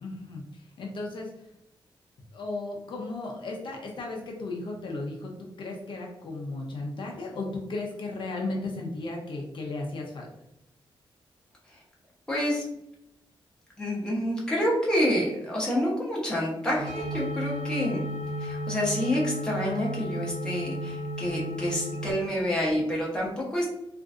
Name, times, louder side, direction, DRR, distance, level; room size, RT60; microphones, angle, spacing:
voice 1, 0.0-1.3 2.3-10.3, left 2 dB, 60° left, 0 dB, 0.6 m, -35 dB
voice 2, 12.3-12.7 13.8-18.1 18.4-23.7, equal, 10° left, -4 dB, 0.9 m, -28 dB
sound 1, 16.8-22.1, equal, 70° right, 1.1 m, -33 dB
3.7 x 2.5 x 2.4 m, 0.82 s
wide cardioid pair, 180°, 9 cm